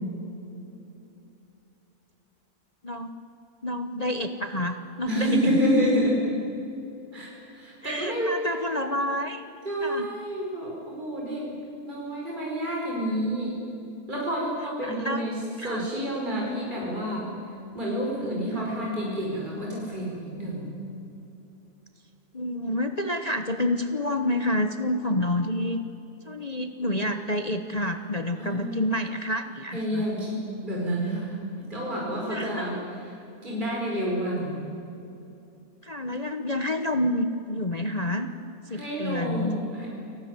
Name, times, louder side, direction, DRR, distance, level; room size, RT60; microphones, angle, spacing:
voice 1, 3.6-5.5 7.8-9.4 9.8-10.1 14.8-15.2 15.6-15.9 18.5-18.7 22.3-25.8 26.3-30.0 32.3-32.8 35.8-38.3 38.7-39.6, left 1 dB, 30° left, 7 dB, 1.0 m, -28 dB
voice 2, 5.1-6.3 7.1-8.9 9.7-11.5 11.8-13.6 14.1-15.3 15.6-17.3 17.7-20.7 28.4-28.9 29.7-33.0 33.4-34.6 38.7-40.0, equal, 30° right, -3 dB, 5.4 m, -29 dB
29.5 x 18.5 x 9.7 m, 2.8 s
omnidirectional pair, 1.6 m